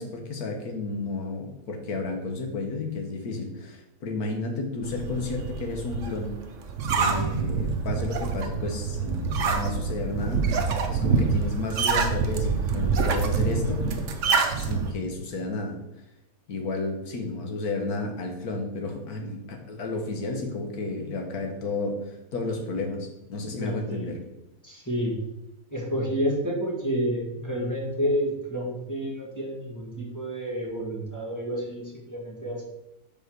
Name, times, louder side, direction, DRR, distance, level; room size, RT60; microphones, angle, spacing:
voice 1, 0.0-6.4 6.9-13.9 14.6-15.8 16.5-22.0 22.3-24.2, left 3 dB, 85° left, 3 dB, 1.6 m, -32 dB
sound 1, 4.8-14.9, right 5 dB, 60° right, 1.1 m, -26 dB
voice 2, 23.6-24.2 24.6-25.2 25.7-32.6, equal, 10° left, -3 dB, 1.7 m, -29 dB
5.3 x 4.7 x 6.1 m, 0.94 s
omnidirectional pair, 1.6 m